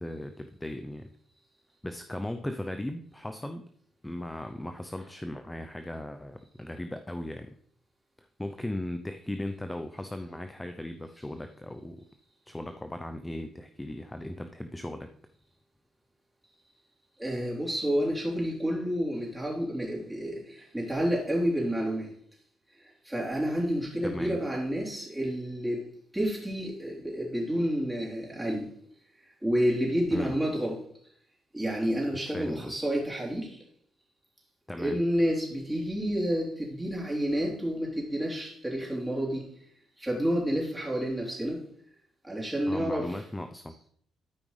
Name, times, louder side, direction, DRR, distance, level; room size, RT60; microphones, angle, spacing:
voice 1, 0.0-1.1 1.8-3.7 4.0-7.6 8.2-12.0 12.5-15.1 24.0-24.4 30.1-30.3 32.3-32.8 34.7-35.0 42.6-43.7, left 1 dB, 10° left, 7 dB, 0.6 m, -37 dB
voice 2, 17.2-22.1 23.0-25.8 26.1-28.7 29.4-30.8 31.5-33.6 34.8-39.4 40.0-41.6 42.2-43.2, equal, 10° right, -3 dB, 3.4 m, -29 dB
13.0 x 5.0 x 3.2 m, 0.64 s
cardioid pair, 90°, 0 cm